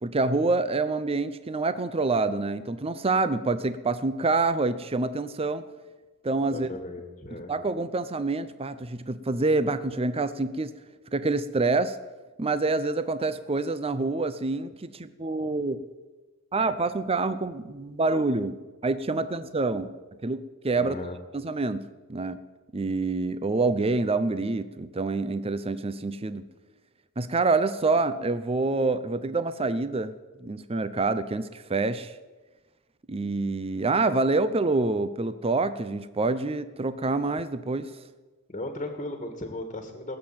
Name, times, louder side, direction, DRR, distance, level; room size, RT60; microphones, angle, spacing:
voice 1, 0.0-5.6 6.2-6.7 7.3-10.7 11.1-12.0 12.4-15.8 16.5-19.9 20.2-21.0 21.3-22.4 22.7-26.4 27.2-30.1 30.4-32.1 33.1-37.9, right 3 dB, 25° right, 13 dB, 0.6 m, -27 dB
voice 2, 6.4-7.5 20.8-21.2 38.5-40.2, left 1 dB, 30° left, 5 dB, 1.7 m, -36 dB
18.5 x 7.6 x 8.9 m, 1.2 s
head